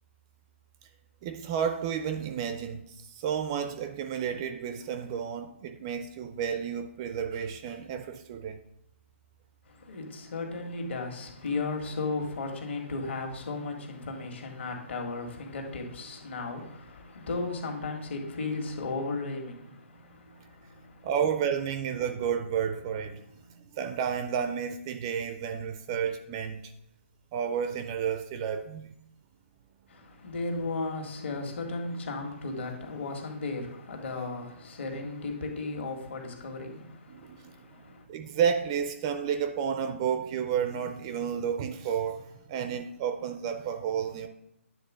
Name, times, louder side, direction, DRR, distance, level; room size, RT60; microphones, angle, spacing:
voice 1, 1.2-8.6 21.0-23.2 23.7-26.7 27.3-28.9 37.1-37.8 38.1-44.3, right 7 dB, 20° right, 0.3 m, -31 dB
voice 2, 9.7-21.1 23.4-23.6 29.9-38.0, left 3 dB, 60° left, 1.9 m, -35 dB
9.6 x 3.6 x 6.2 m
hypercardioid pair, 165°, 7 cm